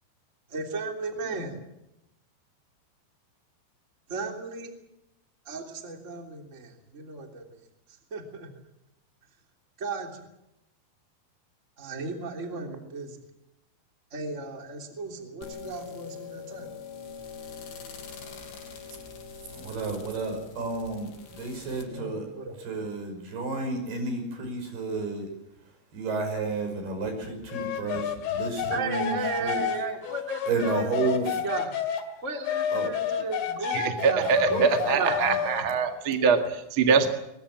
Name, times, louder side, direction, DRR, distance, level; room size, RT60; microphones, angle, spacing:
voice 1, 0.5-1.6 4.1-4.7 5.4-7.6 8.1-8.5 9.8-10.3 11.8-13.2 14.1-16.7 21.9-22.5 28.7-31.7 32.2-34.3, right 3 dB, 20° right, 3 dB, 3.0 m, -35 dB
sound 1, 15.4-21.8, left 6 dB, 85° left, 6.6 m, -43 dB
voice 2, 19.5-22.3 22.6-25.3 25.9-29.8 30.5-31.4 32.7-32.9 34.1-35.5, right 3 dB, 65° right, 6 dB, 7.6 m, -32 dB
sound 2, 27.5-32.1 32.5-35.6, left 8 dB, 70° left, 4.0 m, -30 dB
voice 3, 33.7-37.1, right 5 dB, 40° right, 5 dB, 2.0 m, -23 dB
22.5 x 21.5 x 7.6 m, 0.88 s
omnidirectional pair, 4.9 m